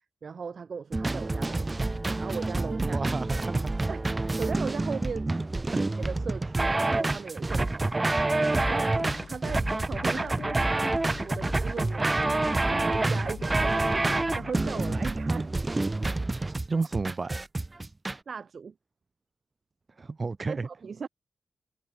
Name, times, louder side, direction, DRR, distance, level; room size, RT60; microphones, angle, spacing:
voice 1, 0.2-3.0 3.9-5.3 5.8-8.0 8.5-10.9 11.2-15.6 18.3-18.7 20.5-21.1, right 5 dB, 60° right, 7.3 m, -38 dB
sound 1, 0.9-18.2, right 2 dB, 25° right, 0.6 m, -28 dB
voice 2, 2.8-3.7 5.7-5.8 16.7-17.4 20.0-20.7, right 4 dB, 40° right, 1.1 m, -31 dB
sound 2, 8.5-15.0, left 7 dB, 75° left, 3.5 m, -42 dB
cardioid pair, 70°, 0 cm